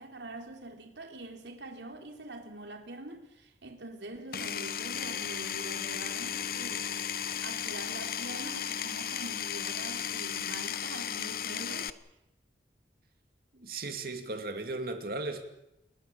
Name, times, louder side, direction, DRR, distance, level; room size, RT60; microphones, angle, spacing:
voice 1, 0.0-7.0 7.4-11.9, right 2 dB, 85° right, 3.3 m, -44 dB
Power tool, 4.3-11.9, left 8 dB, 55° left, 1.0 m, -35 dB
voice 2, 13.5-15.4, right 2 dB, 55° right, 2.5 m, -36 dB
29.0 x 20.0 x 6.9 m
head